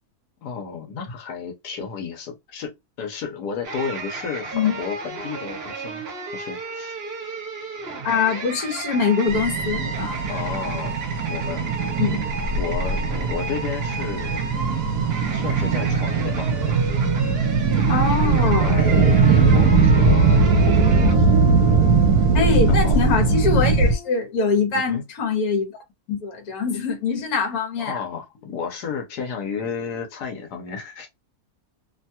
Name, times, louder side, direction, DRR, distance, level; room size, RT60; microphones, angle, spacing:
voice 1, 0.4-2.7 3.0-6.0 6.3-7.0 10.3-11.7 12.5-14.5 15.3-16.5 17.0-17.4 18.6-20.8 21.1-21.3 22.7-23.0 24.7-25.0 27.8-31.1, left 6 dB, 85° left, 1.3 m, -32 dB
sound 1, 3.6-21.1, right 4 dB, 50° right, 0.9 m, -33 dB
voice 2, 8.0-10.2 12.0-12.2 17.9-18.8 22.3-25.7 26.1-28.0, left 5 dB, 70° left, 1.4 m, -23 dB
sound 2, 9.3-23.9, right 4 dB, 70° right, 1.1 m, -19 dB
sound 3, 18.8-24.3, left 3 dB, 45° left, 0.9 m, -36 dB
3.0 x 2.2 x 2.7 m
omnidirectional pair, 1.6 m